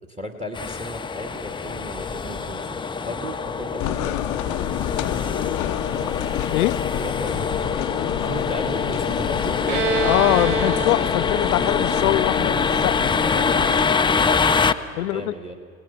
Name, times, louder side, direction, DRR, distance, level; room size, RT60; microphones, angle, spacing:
voice 1, 0.2-4.2 7.0-7.6 8.1-9.6 13.1-14.5 14.9-15.6, equal, 15° right, 4 dB, 2.3 m, -35 dB
sound 1, 0.5-14.7, left 5 dB, 10° left, 0.7 m, -24 dB
sound 2, 3.8-13.8, left 15 dB, 45° left, 0.8 m, -30 dB
Bowed string instrument, 9.7-13.2, right 3 dB, 70° right, 1.6 m, -28 dB
voice 2, 10.0-13.1 15.0-15.5, left 16 dB, 80° left, 17 dB, 0.7 m, -23 dB
30.0 x 19.0 x 5.9 m, 2.2 s
hypercardioid pair, 95°, 43 cm